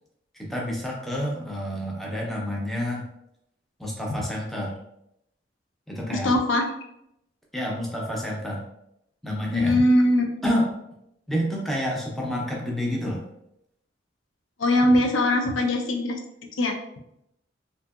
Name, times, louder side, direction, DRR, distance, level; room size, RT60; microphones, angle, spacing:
voice 1, 0.3-3.1 3.8-4.8 5.9-6.3 7.5-8.6 9.2-9.8 10.4-10.8 11.3-13.2, equal, ahead, -3 dB, 0.4 m, -29 dB
voice 2, 6.1-6.7 9.5-10.2 14.6-16.2 16.6-16.7, left 1 dB, 85° left, 3 dB, 0.5 m, -21 dB
2.7 x 2.6 x 2.3 m, 0.78 s
head